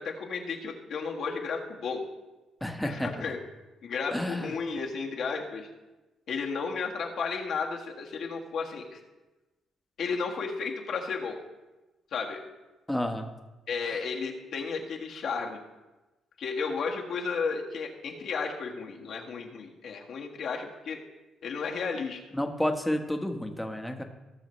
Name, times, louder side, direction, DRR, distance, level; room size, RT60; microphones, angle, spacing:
voice 1, 0.0-2.0 2.8-3.4 3.8-5.7 6.3-9.0 10.0-11.4 12.1-12.4 13.7-15.6 16.4-21.0 21.4-22.2, left 5 dB, 65° left, 0 dB, 1.7 m, -33 dB
voice 2, 2.6-3.1 4.1-4.5 12.9-13.3 13.8-14.0 22.3-24.0, left 1 dB, 5° left, 4 dB, 1.3 m, -30 dB
18.5 x 6.6 x 3.2 m, 1.1 s
cardioid pair, 90°, 0 cm